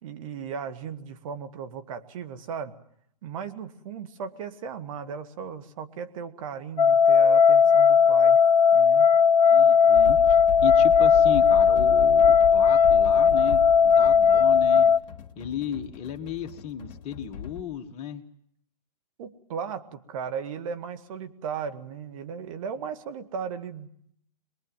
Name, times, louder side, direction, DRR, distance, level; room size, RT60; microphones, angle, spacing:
voice 1, 0.0-2.7 3.2-8.4 8.7-9.1 19.2-23.9, right 7 dB, 50° right, 9 dB, 2.1 m, -36 dB
sound 1, 6.8-15.0, left 6 dB, 90° left, 0.9 m, -18 dB
voice 2, 9.4-10.4 10.6-14.9 15.4-18.2, left 8 dB, 30° left, 5 dB, 1.8 m, -35 dB
sound 2, 9.9-17.6, left 9 dB, 50° left, 2.2 m, -37 dB
24.0 x 21.5 x 7.6 m, 0.69 s
hypercardioid pair, 125°, 21 cm